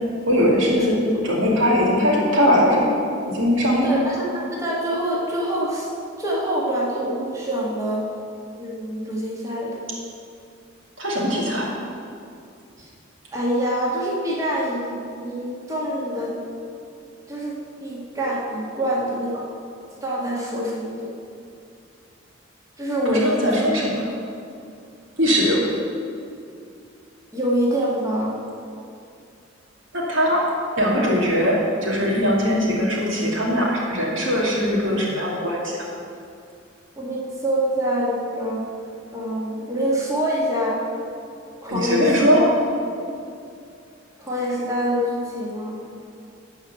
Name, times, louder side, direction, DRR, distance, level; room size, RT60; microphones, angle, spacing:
voice 1, 0.3-2.9 3.3-4.0 11.0-11.7 23.0-24.1 25.2-25.6 29.9-30.4 30.8-35.7 41.7-42.4, equal, 75° right, -3 dB, 2.5 m, -20 dB
voice 2, 3.8-5.9 6.2-8.0 8.6-9.8 12.8-12.9 13.3-16.4 17.3-19.5 20.0-21.1 22.8-23.5 27.3-28.3 37.0-38.6 39.1-40.8 41.6-42.5 44.2-45.8, equal, 15° right, -5 dB, 1.7 m, -25 dB
12.5 x 4.7 x 8.3 m, 2.5 s
head